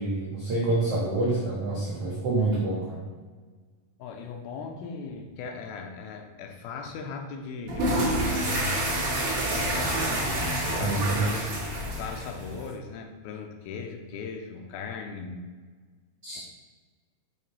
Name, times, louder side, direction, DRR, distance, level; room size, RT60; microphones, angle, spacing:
voice 1, 0.0-3.0 10.8-11.3 16.2-16.4, right 2 dB, 80° right, -6 dB, 1.3 m, -27 dB
voice 2, 4.0-8.8 9.3-10.4 10.7-15.5 16.3-16.4, left 5 dB, 90° left, 4 dB, 2.5 m, -38 dB
sound 1, 7.7-12.7, right 1 dB, 60° right, 1.2 m, -28 dB
6.9 x 3.3 x 4.3 m, 1.5 s
omnidirectional pair, 4.3 m